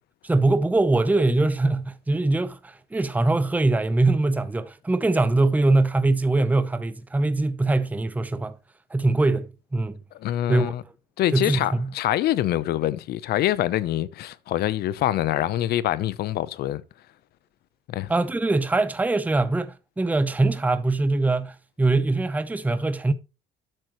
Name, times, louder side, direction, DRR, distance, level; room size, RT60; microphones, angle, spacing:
voice 1, 0.2-8.6 8.9-10.0 10.5-10.7 11.3-11.9 18.1-23.1, right 2 dB, 10° right, 0.7 m, -22 dB
voice 2, 10.1-10.8 11.2-16.8 17.9-18.1, left 13 dB, 70° left, 0.8 m, -25 dB
12.0 x 7.7 x 3.1 m
cardioid pair, 110°, 17 cm